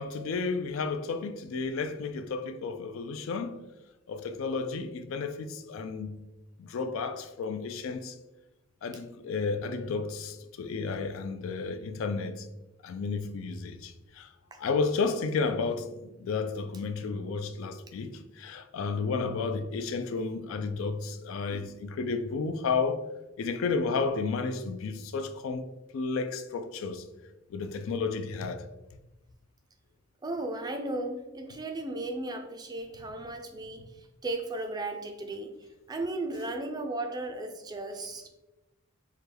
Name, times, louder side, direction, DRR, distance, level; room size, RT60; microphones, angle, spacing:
voice 1, 0.0-3.6 4.1-6.1 6.6-8.1 8.8-12.5 12.8-14.3 14.6-15.9 16.2-23.0 23.4-25.7 25.9-27.0 27.5-28.6, left 4 dB, 70° left, 0.3 m, -32 dB
voice 2, 30.2-33.8 34.2-35.5 35.9-38.3, right 2 dB, 20° right, 0.4 m, -35 dB
4.7 x 2.2 x 3.3 m
head